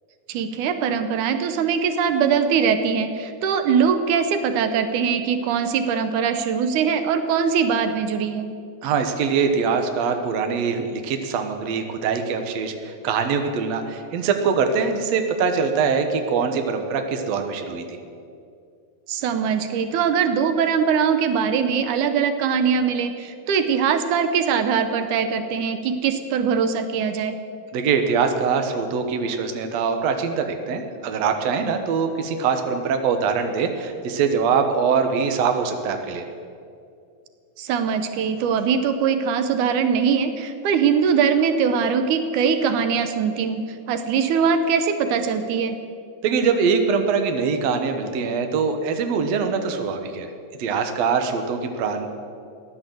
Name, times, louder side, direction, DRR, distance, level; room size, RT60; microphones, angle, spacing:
voice 1, 0.3-8.5 19.1-27.4 37.6-43.6 43.9-45.8, right 6 dB, 90° right, 9 dB, 2.4 m, -22 dB
voice 2, 8.8-18.0 27.7-36.3 46.2-50.3 50.6-52.1, right 5 dB, 65° right, 6 dB, 2.2 m, -23 dB
16.0 x 10.5 x 7.7 m, 2.4 s
omnidirectional pair, 3.4 m